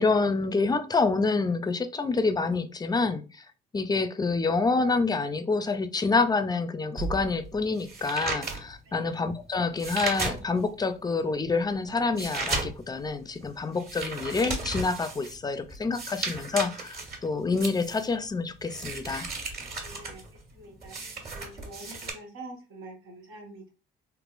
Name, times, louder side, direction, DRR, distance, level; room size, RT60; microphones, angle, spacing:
voice 1, 0.0-3.5 3.7-19.3, left 4 dB, 20° left, 0.4 m, -27 dB
sound 1, 7.0-10.8 11.2-22.1, right 3 dB, 50° right, 1.5 m, -35 dB
voice 2, 8.8-9.2 19.7-21.0 21.3-23.7, right 2 dB, 90° right, 1.1 m, -46 dB
3.4 x 2.9 x 2.5 m
cardioid pair, 90°, 20 cm